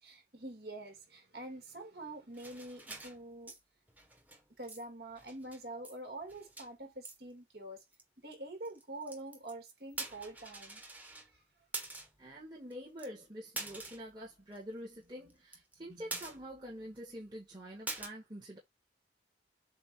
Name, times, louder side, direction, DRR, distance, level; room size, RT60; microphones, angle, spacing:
voice 1, 0.0-3.5 4.6-7.8 8.2-10.8 11.3-11.4, right 2 dB, 60° right, 2.7 m, -46 dB
sound 1, 2.3-3.6 3.9-4.4 4.7-4.8 5.1-6.0 6.2-6.7 7.0-7.2 7.9-8.0 8.6-9.5 9.9-11.3 11.7-12.2 12.7-12.8 13.0-13.1 13.6-14.1 14.5-14.6 14.9-15.0 15.3-15.8 16.1-16.7 17.0-17.1 17.9-18.1, right 2 dB, 10° right, 1.3 m, -44 dB
voice 2, 12.2-18.6, equal, 25° right, 1.9 m, -46 dB
7.7 x 2.7 x 4.7 m
head